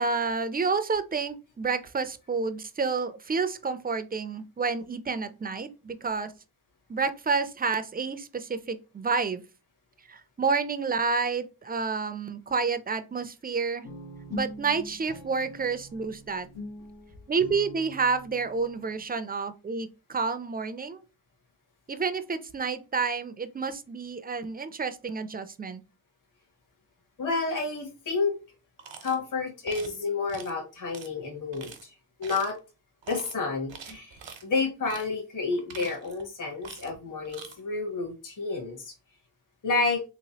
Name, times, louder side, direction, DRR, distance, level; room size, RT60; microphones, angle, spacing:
voice 1, 0.0-6.3 6.9-9.4 10.1-13.9 14.3-16.5 17.3-21.0 21.9-25.8, right 4 dB, 25° right, 0.3 m, -29 dB
Guitar, 13.8-19.0, left 1 dB, 90° left, 1.1 m, -42 dB
voice 2, 27.2-28.3 29.0-31.9 32.2-32.6 33.1-38.9 39.6-40.0, left 4 dB, 45° left, 1.0 m, -30 dB
sound 1, 28.8-29.2 29.7-30.0 30.3-30.5 30.9-31.1 31.5-31.8 32.2-32.6 33.0-33.3 33.7-34.4 34.9-35.1 35.5-36.3 36.6-37.0 37.2-37.6, right 6 dB, 85° right, 0.9 m, -45 dB
3.4 x 3.0 x 2.8 m
wide cardioid pair, 85°, 44 cm